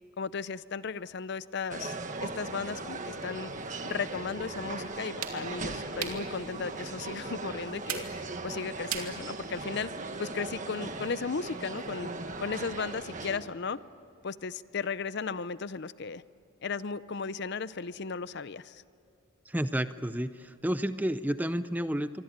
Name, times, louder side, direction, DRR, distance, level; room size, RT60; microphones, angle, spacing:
voice 1, 0.2-3.5 3.8-8.1 8.4-9.9 10.2-12.1 12.4-13.8 14.2-16.2 16.6-18.8, left 5 dB, 50° left, 16 dB, 0.6 m, -35 dB
sound 1, 1.7-13.4, right 3 dB, 35° right, 1.6 m, -38 dB
school bus truck int switches on off various, 4.4-9.9, right 8 dB, 80° right, 2.9 m, -43 dB
voice 2, 19.5-22.2, equal, 10° right, 12 dB, 0.6 m, -31 dB
27.5 x 24.0 x 9.0 m, 2.6 s
head